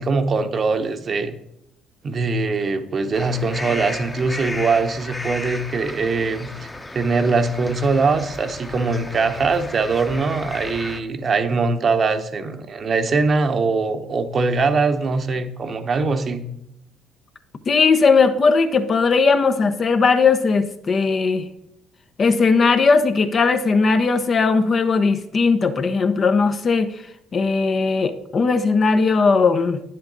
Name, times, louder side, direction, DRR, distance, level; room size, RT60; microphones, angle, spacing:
voice 1, 0.0-1.3 2.0-6.7 6.9-16.4, right 4 dB, 45° right, 8 dB, 1.0 m, -22 dB
sound 1, 3.1-11.0, left 1 dB, 15° left, 1.0 m, -34 dB
voice 2, 17.7-21.5 22.2-27.0 27.3-29.8, left 4 dB, 45° left, 8 dB, 0.9 m, -18 dB
9.8 x 7.7 x 4.0 m, 0.80 s
hypercardioid pair, 60°, 0 cm